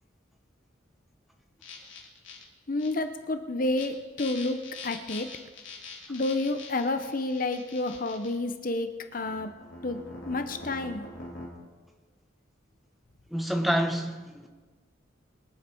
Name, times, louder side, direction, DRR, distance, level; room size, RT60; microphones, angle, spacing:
sound 1, 1.6-2.4 2.8-2.9 3.6-3.8 4.2-8.3 9.2-11.5, left 3 dB, 70° left, 3.5 m, -43 dB
voice 1, 2.7-5.3 6.1-9.5 9.8-10.0 10.3-11.0, left 2 dB, 45° left, 0.7 m, -30 dB
voice 2, 13.3-14.5, equal, ahead, 1.1 m, -28 dB
24.5 x 8.9 x 4.5 m
head